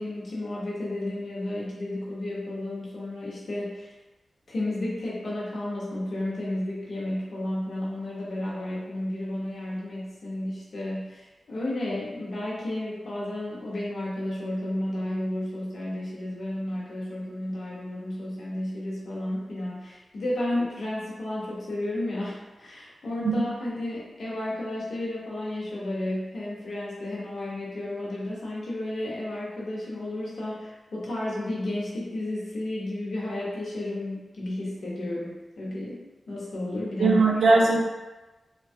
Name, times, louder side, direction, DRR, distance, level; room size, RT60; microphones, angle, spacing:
voice 1, 0.0-3.9 4.5-36.0 36.3-37.2, left 1 dB, 70° left, -6 dB, 0.8 m, -32 dB
voice 2, 37.0-37.8, right 3 dB, 90° right, -1 dB, 0.5 m, -20 dB
3.1 x 2.3 x 2.6 m, 1.1 s
wide cardioid pair, 155°, 0 cm